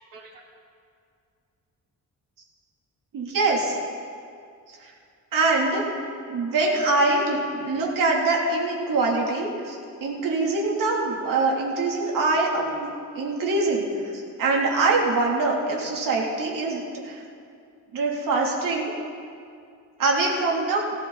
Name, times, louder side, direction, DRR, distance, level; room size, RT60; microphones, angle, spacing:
voice 1, 3.1-3.8 4.8-4.9 5.3-5.9 6.3-12.9 13.1-17.2 17.9-18.9 20.0-20.9, right 3 dB, 80° right, -1 dB, 3.0 m, -24 dB
19.5 x 16.5 x 4.1 m, 2.3 s
cardioid pair, 130°, 32 cm